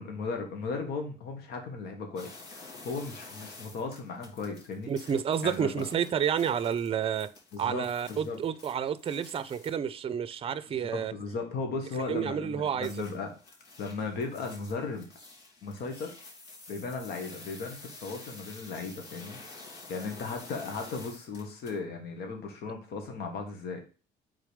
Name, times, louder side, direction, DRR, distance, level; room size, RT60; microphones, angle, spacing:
voice 1, 0.0-4.9 5.4-5.7 7.5-8.4 10.8-13.3 13.8-15.1 15.6-16.1 16.7-23.8, left 4 dB, 70° left, 1.4 m, -36 dB
sound 1, 2.2-9.7 12.8-21.8, left 3 dB, 90° left, 2.3 m, -49 dB
voice 2, 4.9-7.3 7.6-11.1 12.1-13.0, right 8 dB, 35° right, 0.5 m, -30 dB
5.0 x 3.9 x 4.9 m
cardioid pair, 110°, 17 cm